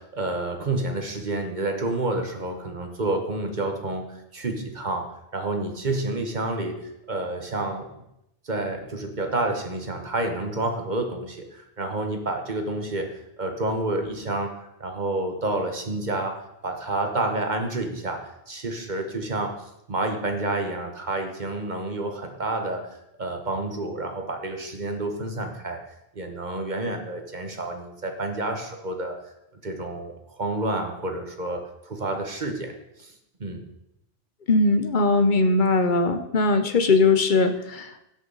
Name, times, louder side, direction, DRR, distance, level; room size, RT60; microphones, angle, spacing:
voice 1, 0.0-8.0 8.4-13.1 13.4-19.6 19.9-25.8 26.1-29.1 29.6-32.7 33.0-33.1 33.4-33.7, right 2 dB, 45° right, 4 dB, 1.3 m, -29 dB
voice 2, 34.5-38.0, left 3 dB, 50° left, 8 dB, 1.0 m, -20 dB
16.0 x 6.4 x 4.0 m, 0.83 s
omnidirectional pair, 1.1 m